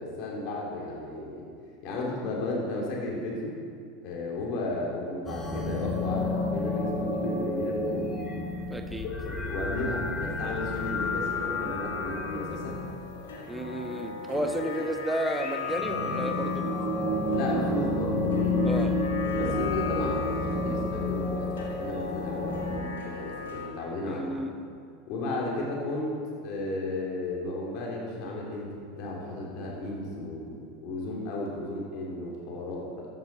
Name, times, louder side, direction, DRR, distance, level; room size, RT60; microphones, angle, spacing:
voice 1, 0.0-1.5 1.8-3.6 4.0-8.1 9.2-12.7 14.3-14.5 17.3-18.7 19.4-24.3 25.1-33.1, left 2 dB, 55° left, -2 dB, 3.2 m, -34 dB
sound 1, 5.3-13.9 15.0-22.8, left 2 dB, 20° left, 2.7 m, -30 dB
voice 2, 8.7-9.1 13.5-16.8 18.7-19.0 24.1-24.5, right 1 dB, 10° right, 5 dB, 1.1 m, -32 dB
sound 2, 9.2-23.7, left 6 dB, 75° left, 1.6 m, -38 dB
13.5 x 9.7 x 4.3 m, 2.2 s
hypercardioid pair, 80°, 0 cm